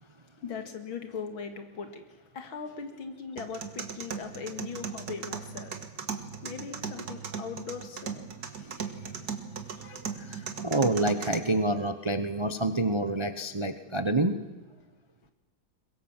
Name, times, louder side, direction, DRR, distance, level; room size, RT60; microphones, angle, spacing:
voice 1, 0.4-5.9 6.4-8.2 8.6-8.7 9.2-9.3 9.8-9.9 10.4-10.5 15.2-15.3, left 6 dB, 85° left, 7 dB, 2.8 m, -40 dB
sound 1, 3.4-11.4, right 6 dB, 55° right, 2.0 m, -38 dB
voice 2, 9.8-14.4, right 2 dB, 35° right, 10 dB, 0.4 m, -28 dB
22.5 x 22.0 x 7.4 m, 1.2 s
omnidirectional pair, 2.1 m